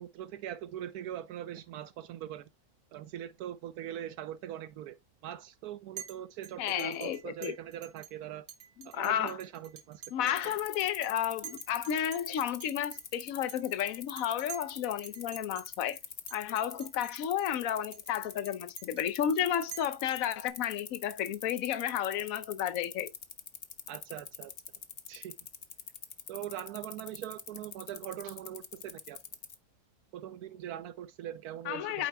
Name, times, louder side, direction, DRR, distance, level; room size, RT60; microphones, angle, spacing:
voice 1, 0.0-2.5 2.9-5.0 5.2-8.4 8.8-10.5 23.9-24.5 25.1-25.3 26.3-29.2 30.1-32.1, right 11 dB, 80° right, 1.1 m, -42 dB
Chink clink, 6.0-6.2 6.4-8.1 8.5-10.4 10.8-11.1 11.4-14.7 15.0-15.7 15.9-16.0 16.3-17.1 17.4-17.5 17.9-20.5, right 8 dB, 65° right, 2.3 m, -48 dB
voice 2, 6.6-7.5 8.8-9.4 10.1-16.0 16.3-23.1 31.7-32.1, left 10 dB, 65° left, 1.1 m, -32 dB
sound 1, 10.4-29.5, left 7 dB, 45° left, 0.9 m, -43 dB
8.8 x 7.2 x 2.2 m
omnidirectional pair, 1.6 m